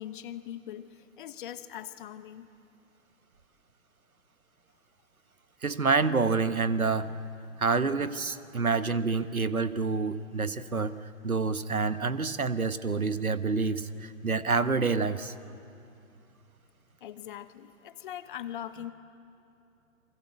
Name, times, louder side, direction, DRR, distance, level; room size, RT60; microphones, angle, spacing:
voice 1, 0.0-2.5 17.0-18.9, left 11 dB, 35° left, 13 dB, 1.2 m, -41 dB
voice 2, 5.6-7.1 7.6-11.0 11.2-15.3, right 4 dB, 80° right, 13 dB, 1.3 m, -27 dB
30.0 x 24.0 x 8.3 m, 2.7 s
figure-of-eight pair, 125°, 42 cm